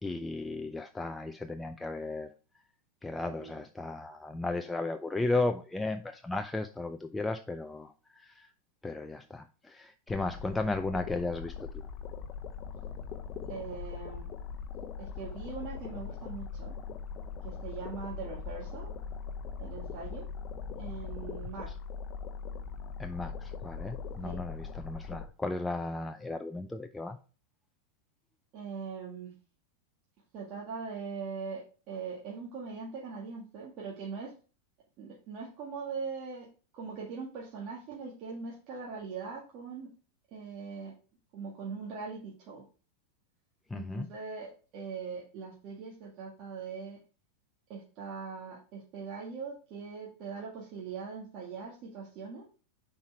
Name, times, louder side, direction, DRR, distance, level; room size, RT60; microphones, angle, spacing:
voice 1, 0.0-2.3 3.0-8.5 8.8-11.8 23.0-27.2 43.7-44.1, left 2 dB, 10° left, 0.4 m, -35 dB
voice 2, 3.2-3.6 13.5-14.3 15.0-16.7 17.4-18.9 19.6-20.3 20.8-21.7 24.2-24.4 28.5-29.3 30.3-34.3 35.0-36.5 36.7-39.9 40.3-40.9 41.3-42.7 43.7-47.0 47.7-52.5, right 5 dB, 45° right, 1.8 m, -41 dB
sound 1, 10.1-25.3, left 6 dB, 40° left, 0.8 m, -41 dB
5.6 x 4.5 x 4.3 m
hypercardioid pair, 110°, 0 cm